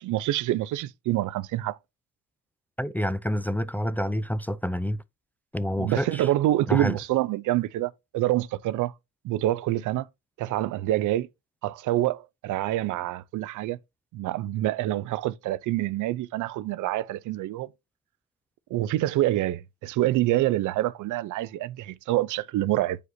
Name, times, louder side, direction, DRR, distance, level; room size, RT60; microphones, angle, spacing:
voice 1, 0.0-1.8 5.8-8.9 9.2-10.1 10.4-11.3 11.6-13.8 14.1-17.7 18.7-23.0, right 15 dB, 80° right, 0.5 m, -26 dB
voice 2, 2.8-5.0 5.5-6.3 6.7-7.0, equal, 5° left, 0.4 m, -28 dB
7.9 x 5.0 x 2.7 m
cardioid pair, 90°, 30 cm